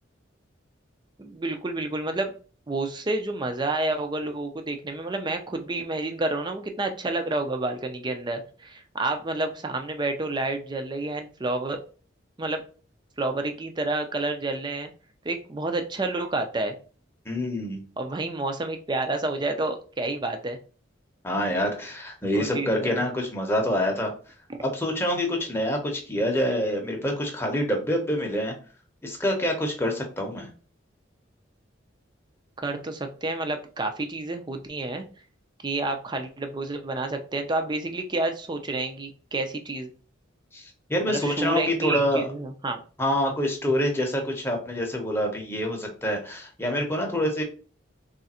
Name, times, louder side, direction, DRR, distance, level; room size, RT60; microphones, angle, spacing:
voice 1, 1.2-2.3 2.7-11.8 12.4-12.6 13.2-14.9 15.2-16.7 18.0-20.6 22.3-23.0 24.5-24.6 32.6-35.1 35.6-39.9 41.1-42.8, right 2 dB, 25° right, 6 dB, 0.5 m, -29 dB
voice 2, 17.3-17.8 21.2-24.1 24.6-28.5 29.0-30.5 40.5-42.3 43.0-47.4, equal, 15° left, 1 dB, 0.8 m, -26 dB
3.3 x 2.5 x 4.2 m, 0.39 s
head